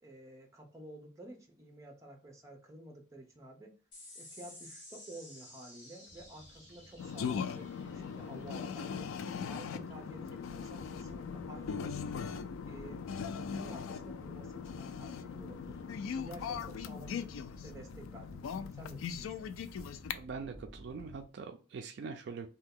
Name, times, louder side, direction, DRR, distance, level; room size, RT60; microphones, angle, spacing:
voice 1, 0.0-3.7 4.1-9.1 9.5-12.0 12.7-15.8 16.1-19.5, right 1 dB, 15° right, 2 dB, 0.6 m, -51 dB
sound 1, 3.9-10.7, left 1 dB, 40° left, 1.2 m, -55 dB
sound 2, 6.1-21.2, equal, 60° left, 0.7 m, -54 dB
sound 3, 7.0-20.1, left 6 dB, 85° left, 0.3 m, -40 dB
voice 2, 20.1-22.5, right 5 dB, 55° right, 5 dB, 0.3 m, -43 dB
2.7 x 2.2 x 3.6 m, 0.36 s
head